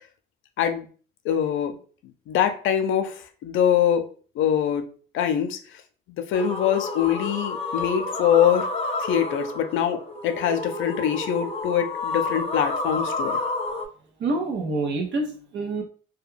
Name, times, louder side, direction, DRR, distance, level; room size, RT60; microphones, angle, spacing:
voice 1, 0.6-0.9 1.2-1.8 2.3-4.0 4.4-4.9 5.1-5.6 6.1-8.7 9.0-13.4, left 9 dB, 80° left, 7 dB, 0.5 m, -23 dB
sound 1, 6.3-13.8, left 3 dB, 30° left, 0.5 m, -30 dB
voice 2, 14.2-15.8, right 3 dB, 65° right, 2 dB, 0.7 m, -27 dB
2.2 x 2.2 x 3.1 m, 0.40 s
cardioid pair, 90°, 20 cm